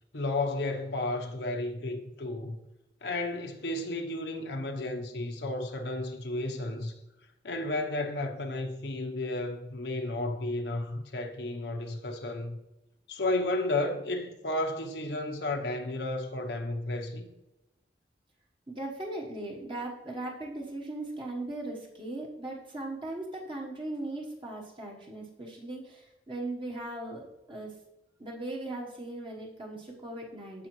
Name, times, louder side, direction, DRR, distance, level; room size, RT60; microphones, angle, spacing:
voice 1, 0.1-2.6 3.0-6.9 7.4-12.6 13.1-17.3, left 2 dB, 70° left, 0.9 m, -32 dB
voice 2, 18.7-27.7 28.2-30.7, right 2 dB, 30° right, 1.2 m, -38 dB
14.5 x 4.9 x 3.1 m
head